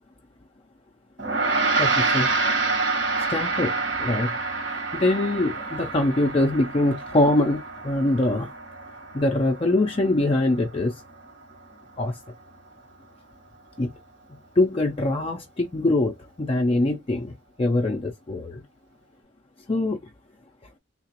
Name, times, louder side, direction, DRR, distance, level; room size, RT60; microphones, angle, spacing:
Gong, 1.2-10.7, right 3 dB, 70° right, 1.9 m, -27 dB
voice 1, 1.8-2.3 3.3-4.3 4.7-8.5 9.1-10.9 12.0-12.1 13.8-13.9 14.6-18.6 19.7-20.0, left 2 dB, 30° left, 0.4 m, -23 dB
3.7 x 2.4 x 2.8 m
head